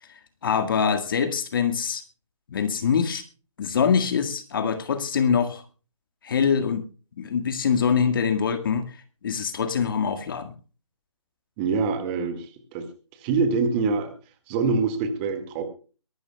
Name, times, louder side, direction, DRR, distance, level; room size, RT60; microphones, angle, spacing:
voice 1, 0.4-2.0 2.5-3.2 3.6-5.6 6.2-6.9 7.2-9.0 9.2-10.5, left 6 dB, 40° left, 8 dB, 1.8 m, -24 dB
voice 2, 11.6-12.9 13.2-14.1 14.5-15.6, right 4 dB, 20° right, 9 dB, 1.9 m, -25 dB
23.0 x 12.5 x 2.3 m, 0.36 s
figure-of-eight pair, 150°, 17 cm